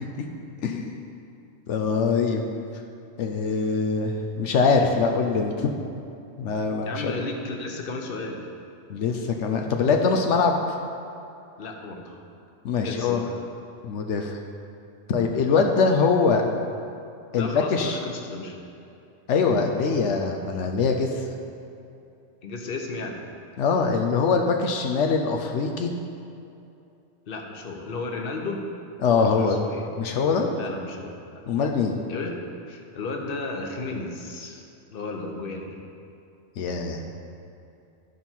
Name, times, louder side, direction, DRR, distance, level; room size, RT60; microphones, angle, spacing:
voice 1, 0.6-1.0 1.7-2.4 3.2-5.7 6.4-7.1 8.9-10.5 12.6-13.3 13.8-14.4 15.1-16.4 17.3-18.0 19.3-21.2 23.6-25.9 29.0-29.6 30.0-30.5 31.5-31.9 36.6-37.0, left 5 dB, 85° left, 3 dB, 1.0 m, -23 dB
voice 2, 6.8-8.5 11.6-12.2 12.8-13.3 17.4-18.5 22.4-23.2 27.3-28.6 29.2-29.9 30.6-31.4 32.1-34.6 34.9-35.8, left 3 dB, 55° left, 2 dB, 1.1 m, -34 dB
13.5 x 5.5 x 4.5 m, 2.6 s
omnidirectional pair, 1.2 m